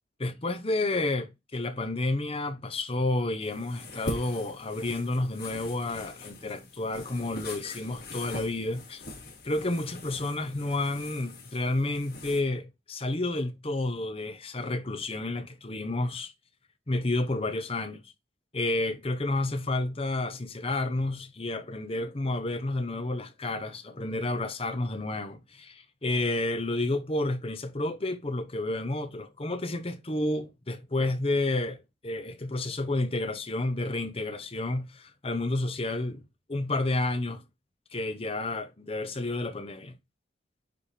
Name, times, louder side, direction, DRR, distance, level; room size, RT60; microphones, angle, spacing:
voice 1, 0.2-9.0 9.4-16.3 16.9-18.0 18.5-36.2 36.5-37.4 37.9-39.9, left 2 dB, 30° left, 0.9 m, -30 dB
sound 1, 3.4-12.4, left 2 dB, 55° left, 3.4 m, -43 dB
9.6 x 3.4 x 4.3 m
head